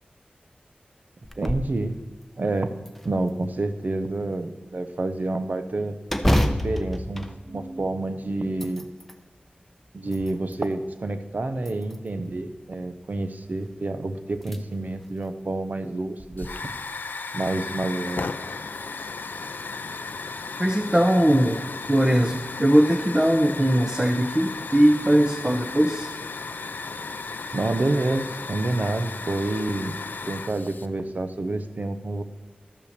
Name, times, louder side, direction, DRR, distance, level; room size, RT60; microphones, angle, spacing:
sound 1, 1.2-1.8 2.2-2.3 2.9-3.7 6.1-8.1 8.5-9.2 9.8-10.7 11.6-12.3 13.7-13.8 14.4-14.6 15.0-15.1 16.2-16.5, equal, 5° left, 0.8 m, -28 dB
voice 1, 1.4-1.9 2.4-2.7 3.0-6.0 6.6-8.9 9.9-16.7 17.3-18.3 27.5-30.0 30.3-32.2, right 2 dB, 55° right, 9 dB, 0.8 m, -28 dB
Hiss / Fire, 16.4-30.9, left 4 dB, 70° left, 0.5 m, -35 dB
voice 2, 20.6-21.6 21.9-26.1, right 1 dB, 25° right, 2 dB, 0.9 m, -20 dB
12.5 x 5.6 x 6.7 m, 1.5 s
cardioid pair, 45°, 3 cm